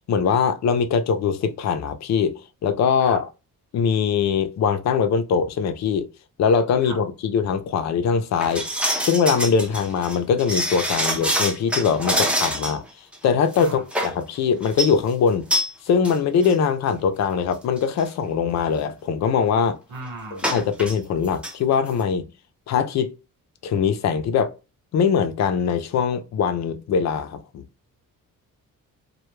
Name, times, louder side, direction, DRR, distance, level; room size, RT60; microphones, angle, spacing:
voice 1, 0.1-3.2 3.7-6.1 6.4-8.7 9.0-12.8 13.2-15.5 15.8-19.8 20.5-22.3 22.7-23.1 23.6-24.5 24.9-27.6, left 6 dB, 55° left, 0.5 m, -22 dB
sound 1, 8.4-12.8 13.1-13.2 13.5-14.2 14.6-14.9 15.5-15.7 16.0-16.2 16.4-16.5 17.3-17.4 17.8-18.0 20.4-21.0 21.2-21.5 21.9-22.0, equal, 5° right, 0.4 m, -25 dB
voice 2, 19.9-20.6, right 3 dB, 75° right, 1.2 m, -37 dB
2.2 x 2.2 x 3.0 m
cardioid pair, 135°, 34 cm